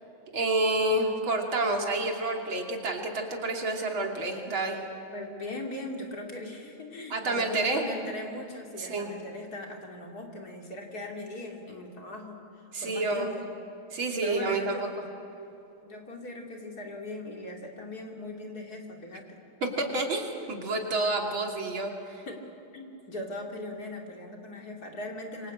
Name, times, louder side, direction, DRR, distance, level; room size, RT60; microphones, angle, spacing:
voice 1, 0.3-4.8 7.1-7.9 8.8-9.1 12.7-13.4 13.9-14.9 19.6-22.3, right 2 dB, 75° right, 2 dB, 3.6 m, -29 dB
voice 2, 5.1-12.4 12.8-13.5 14.2-14.8 15.8-19.4 22.2-22.4 22.7-25.5, left 1 dB, 45° left, 1 dB, 3.4 m, -39 dB
27.0 x 24.5 x 8.6 m, 2.9 s
omnidirectional pair, 2.2 m